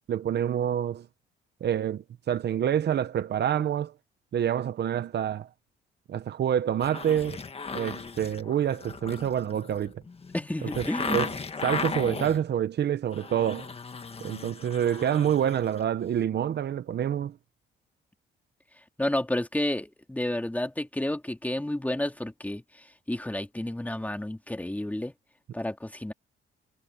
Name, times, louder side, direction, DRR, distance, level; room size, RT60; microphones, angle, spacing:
voice 1, 0.1-1.1 1.6-3.9 4.3-5.5 6.1-7.4 7.7-9.9 10.6-11.3 11.6-13.7 14.2-17.3, right 9 dB, 55° right, 1.0 m, -27 dB
sound 1, 6.8-12.4 12.9-15.8 16.1-16.2, left 4 dB, 30° left, 1.6 m, -36 dB
voice 2, 10.3-11.2 19.0-22.6 23.1-25.1 25.5-26.1, left 1 dB, 10° left, 2.5 m, -30 dB
cardioid pair, 90°, 20 cm